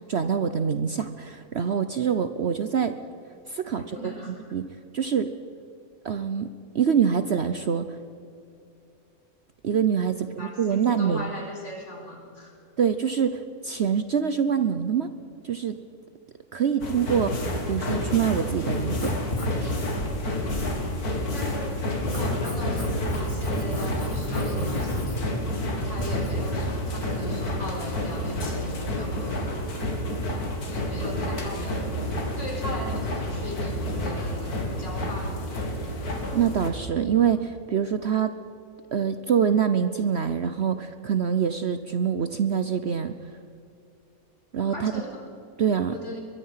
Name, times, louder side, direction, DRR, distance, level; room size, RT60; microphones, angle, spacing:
voice 1, 0.1-3.0 3.5-4.6 4.9-5.3 6.0-6.5 6.7-8.0 9.6-11.3 12.8-15.1 15.4-15.8 16.5-19.1 19.6-19.8 36.3-38.4 38.9-43.1 44.5-45.0 45.6-45.9, right 7 dB, 50° right, 10 dB, 0.9 m, -25 dB
voice 2, 3.7-4.3 10.2-12.5 21.3-25.3 25.8-29.4 30.7-32.0 32.4-35.4 44.7-45.2 45.8-46.2, equal, 50° left, 0 dB, 4.9 m, -38 dB
sound 1, 16.8-36.7, left 1 dB, 90° left, 3.0 m, -29 dB
Writing, 18.8-26.5, equal, 20° left, 3.3 m, -35 dB
23.0 x 22.5 x 5.8 m, 2.6 s
omnidirectional pair, 1.6 m